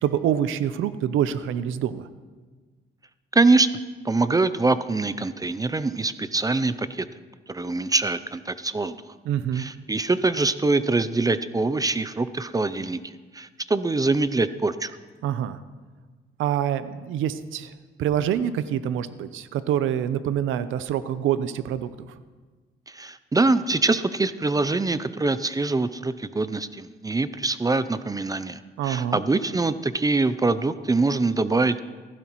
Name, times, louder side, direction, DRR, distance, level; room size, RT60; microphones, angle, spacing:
voice 1, 0.0-2.1 9.3-9.7 15.2-15.6 16.4-17.7 18.0-22.1 28.8-29.2, right 10 dB, 80° right, 13 dB, 0.7 m, -26 dB
voice 2, 3.3-3.7 4.0-7.1 7.5-9.0 9.5-14.9 22.9-31.8, right 3 dB, 20° right, 14 dB, 0.5 m, -24 dB
16.0 x 15.5 x 3.1 m, 1.4 s
cardioid pair, 90°, 20 cm